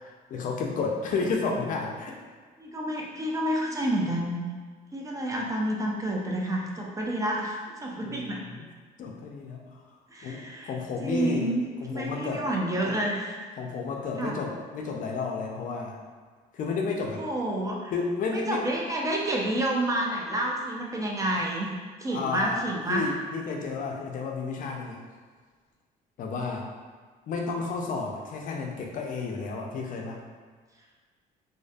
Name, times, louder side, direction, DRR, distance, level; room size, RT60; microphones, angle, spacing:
voice 1, 0.0-2.1 7.9-8.7 9.0-9.8 10.2-11.5 11.8-12.5 13.6-16.0 16.5-17.2 17.9-18.7 22.1-25.0 26.2-26.7 27.3-30.2, left 4 dB, 50° left, 1 dB, 0.4 m, -32 dB
voice 2, 2.6-4.4 4.9-8.4 10.1-10.7 11.0-11.6 11.9-13.5 14.2-14.4 17.2-17.9 18.3-21.7 22.0-23.1, right 1 dB, 20° right, -2 dB, 0.3 m, -29 dB
2.5 x 2.5 x 2.3 m, 1.5 s
cardioid pair, 110°, 17 cm